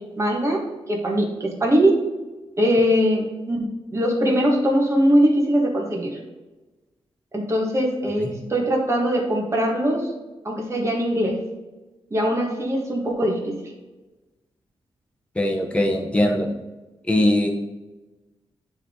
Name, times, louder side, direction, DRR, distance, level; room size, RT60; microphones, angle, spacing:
voice 1, 0.2-0.6 0.9-1.9 2.6-6.2 7.3-10.1 10.4-11.4 12.1-13.5, equal, 30° right, -1 dB, 1.6 m, -21 dB
voice 2, 15.3-16.5 17.1-17.5, left 1 dB, 10° left, 1 dB, 1.1 m, -20 dB
9.4 x 3.5 x 3.8 m, 1.1 s
wide cardioid pair, 120°, 10 cm